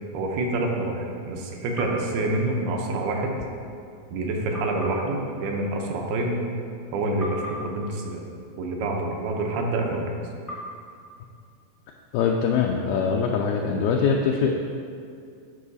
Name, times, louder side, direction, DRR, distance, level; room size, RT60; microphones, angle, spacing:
voice 1, 0.1-3.4 4.1-6.4 6.9-8.2 8.6-10.1, right 2 dB, 75° right, 1 dB, 2.7 m, -27 dB
sound 1, 1.7-3.1 4.5-6.8 7.2-9.5 10.5-12.3, equal, 20° left, 0.8 m, -42 dB
voice 2, 12.1-14.5, left 6 dB, 80° left, 1 dB, 2.2 m, -23 dB
12.5 x 5.5 x 4.1 m, 2.3 s
omnidirectional pair, 4.8 m